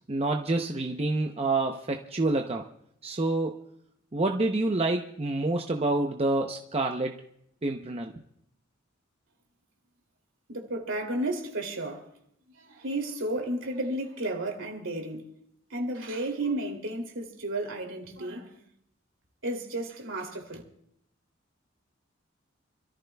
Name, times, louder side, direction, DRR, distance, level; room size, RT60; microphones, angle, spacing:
voice 1, 0.1-2.7 3.0-3.6 4.1-7.2 7.6-8.1, right 2 dB, 30° right, 0.8 m, -27 dB
voice 2, 10.5-12.1 12.6-15.3 15.7-18.6 19.4-20.6, right 1 dB, 70° right, 2.9 m, -33 dB
29.0 x 14.0 x 2.3 m
head